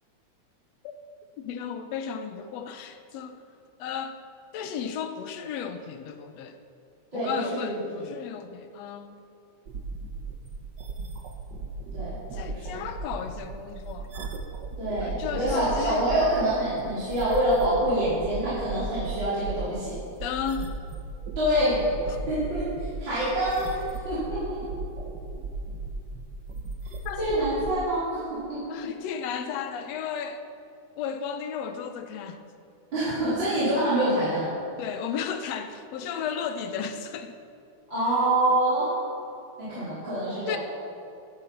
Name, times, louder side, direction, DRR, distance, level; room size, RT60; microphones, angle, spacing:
voice 1, 1.4-3.4 3.8-4.2 4.5-6.6 7.1-9.2 12.3-14.1 15.0-16.0 20.2-20.7 22.1-22.2 27.1-27.3 28.7-30.4 31.0-32.5 33.4-33.6 34.8-37.4 40.5-40.6, left 7 dB, 70° left, 8 dB, 1.8 m, -34 dB
voice 2, 7.1-8.1 11.9-12.1 12.5-12.6 14.8-20.0 21.4-21.8 22.3-24.6 27.2-28.6 32.9-34.5 37.9-38.9 39.6-40.6, right 1 dB, 40° right, -12 dB, 4.9 m, -26 dB
sound 1, 9.7-27.7, right 3 dB, 65° right, 1.0 m, -36 dB
14.0 x 11.5 x 5.8 m, 2.6 s
omnidirectional pair, 3.4 m